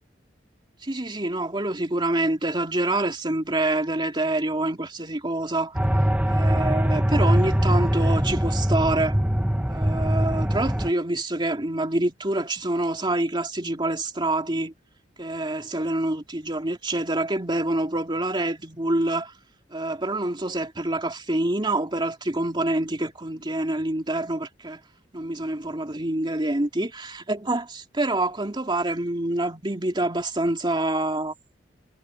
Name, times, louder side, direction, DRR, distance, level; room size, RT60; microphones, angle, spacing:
voice 1, 0.8-5.8 6.3-9.2 9.7-14.7 15.2-19.3 19.7-24.8 25.1-31.3, right 2 dB, 25° right, 2.6 m, -26 dB
sound 1, 5.8-10.9, equal, 10° right, 1.4 m, -22 dB
head